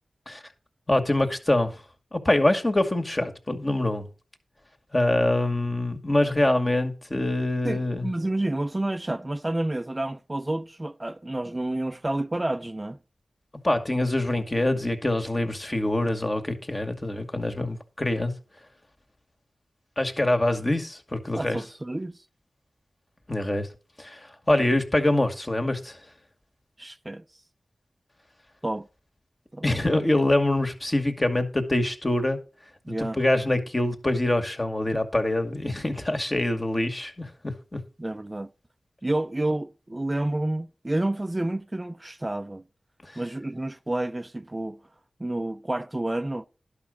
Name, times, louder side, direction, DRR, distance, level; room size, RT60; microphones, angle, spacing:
voice 1, 0.9-1.8 2.1-4.1 4.9-8.1 13.6-18.3 20.0-21.6 23.3-23.7 24.0-26.0 29.6-32.4 32.9-37.8 43.0-43.2, left 1 dB, 35° left, 2.2 m, -25 dB
voice 2, 7.6-13.0 21.4-22.2 26.8-27.2 28.6-28.9 29.5-29.6 32.9-33.2 38.0-38.5 39.0-42.6 43.2-44.8 45.2-46.4, right 1 dB, 25° right, 0.5 m, -29 dB
11.5 x 5.3 x 7.0 m
cardioid pair, 40°, 0 cm